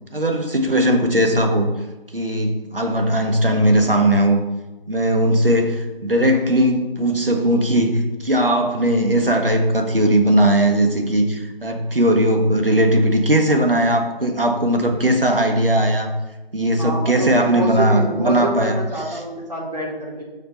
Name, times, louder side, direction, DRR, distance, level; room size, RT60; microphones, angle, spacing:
voice 1, 0.1-1.7 2.1-4.4 4.9-16.1 16.5-18.8, right 1 dB, 65° right, 3 dB, 1.6 m, -18 dB
voice 2, 16.8-20.2, right 2 dB, 45° right, -4 dB, 2.7 m, -27 dB
7.6 x 5.1 x 6.7 m, 1.1 s
figure-of-eight pair, 175°, 30 cm